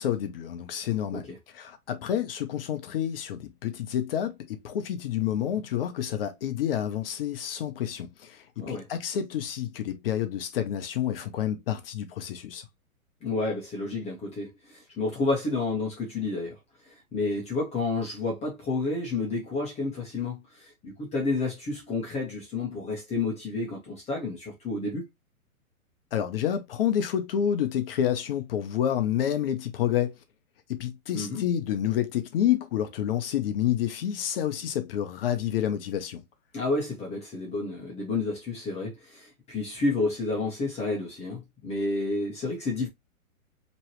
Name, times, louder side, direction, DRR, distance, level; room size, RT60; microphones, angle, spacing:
voice 1, 0.0-1.3 1.5-12.6 26.1-30.1 30.7-36.2, left 10 dB, 40° left, 0.7 m, -29 dB
voice 2, 8.6-8.9 13.2-16.6 16.8-25.0 31.1-31.4 36.5-42.9, left 3 dB, 15° left, 1.0 m, -30 dB
4.5 x 3.1 x 3.0 m
hypercardioid pair, 135°, 43 cm